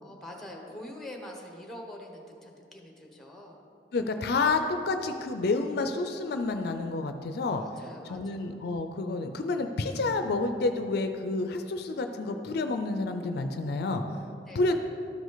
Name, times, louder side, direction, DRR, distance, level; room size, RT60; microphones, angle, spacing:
voice 1, 0.0-3.7 7.6-8.6 14.5-14.7, left 1 dB, ahead, 1 dB, 1.0 m, -45 dB
voice 2, 3.9-7.6 8.1-14.0 14.6-14.7, left 3 dB, 65° left, 7 dB, 0.4 m, -29 dB
12.5 x 5.1 x 4.0 m, 2.5 s
head